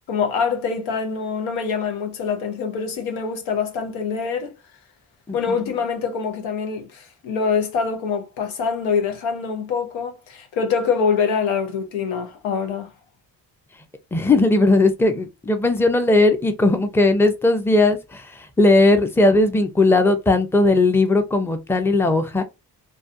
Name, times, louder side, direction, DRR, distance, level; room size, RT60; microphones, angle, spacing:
voice 1, 0.1-4.5 5.3-12.9, left 6 dB, 90° left, 0.7 m, -24 dB
voice 2, 14.1-22.4, left 2 dB, 5° left, 0.5 m, -18 dB
2.3 x 2.3 x 2.6 m
supercardioid pair, 50°, 46 cm